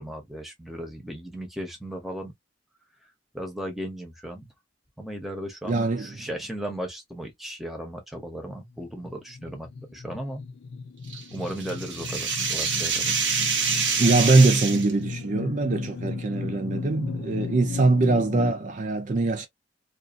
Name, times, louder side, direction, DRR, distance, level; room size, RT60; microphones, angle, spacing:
voice 1, 0.0-2.3 3.3-4.5 5.0-10.4 11.3-13.1, equal, ahead, 0.8 m, -36 dB
voice 2, 5.7-6.3 14.0-19.5, right 3 dB, 45° right, 0.4 m, -22 dB
sound 1, 8.7-18.5, left 4 dB, 70° left, 0.4 m, -35 dB
sound 2, 11.1-14.9, right 5 dB, 85° right, 1.1 m, -26 dB
2.5 x 2.4 x 2.4 m
head